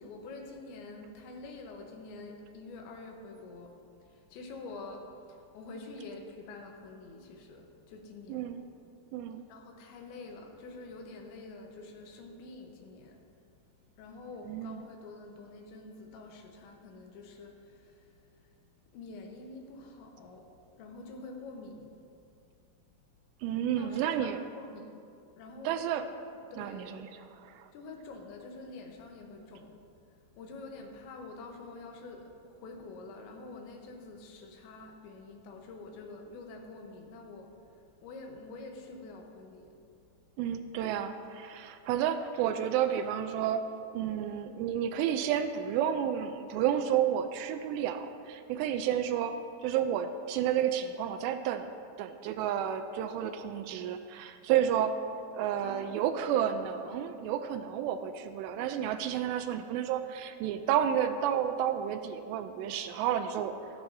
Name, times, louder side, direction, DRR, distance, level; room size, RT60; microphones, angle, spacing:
voice 1, 0.0-8.6 9.5-13.3 14.0-18.5 18.9-22.0 22.3-22.4 23.8-25.0 25.4-25.9 26.5-27.0 27.7-39.8 55.6-57.2, left 3 dB, 85° left, 2 dB, 3.4 m, -47 dB
voice 2, 8.3-8.6 9.1-9.4 14.5-14.8 23.4-24.4 25.7-26.0 26.6-27.0 27.4-27.7 40.4-43.6 43.9-55.0 55.3-63.5, right 9 dB, 85° right, 8 dB, 2.7 m, -31 dB
15.5 x 13.0 x 2.8 m, 2.4 s
omnidirectional pair, 5.1 m